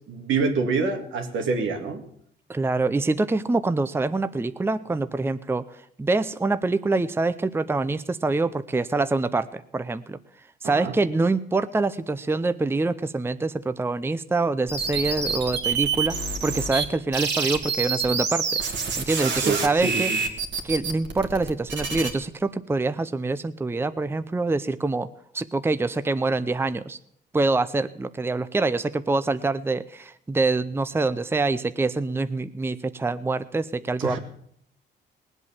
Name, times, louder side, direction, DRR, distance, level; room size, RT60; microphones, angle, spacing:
voice 1, 0.1-2.0 10.6-10.9 19.4-20.2 34.0-34.2, right 4 dB, 80° right, 4 dB, 2.3 m, -26 dB
voice 2, 2.5-5.7 6.0-10.2 10.6-16.2 16.4-18.6 19.0-20.1 20.6-25.1 25.3-27.0 27.3-34.2, right 3 dB, 10° right, 13 dB, 0.6 m, -25 dB
sound 1, 14.7-16.8 17.1-22.1, right 5 dB, 65° right, 2.3 m, -27 dB
19.5 x 8.2 x 7.1 m, 0.68 s
cardioid pair, 90°, 20 cm